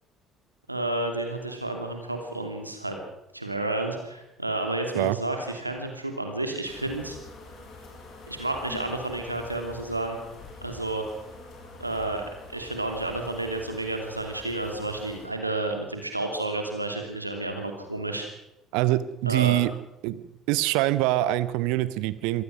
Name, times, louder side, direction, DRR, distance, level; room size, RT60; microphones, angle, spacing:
voice 1, 0.7-3.0 3.3-7.2 8.3-10.2 10.6-11.0 11.8-12.2 12.5-18.3 19.3-19.6, right 2 dB, 90° right, 4 dB, 2.7 m, -31 dB
sound 1, 6.7-15.3, left 3 dB, 50° left, 6.5 m, -45 dB
voice 2, 18.7-19.7 20.0-20.2 20.5-22.4, right 17 dB, 60° right, 17 dB, 0.9 m, -24 dB
25.5 x 18.0 x 6.3 m, 0.91 s
figure-of-eight pair, 55°, 0 cm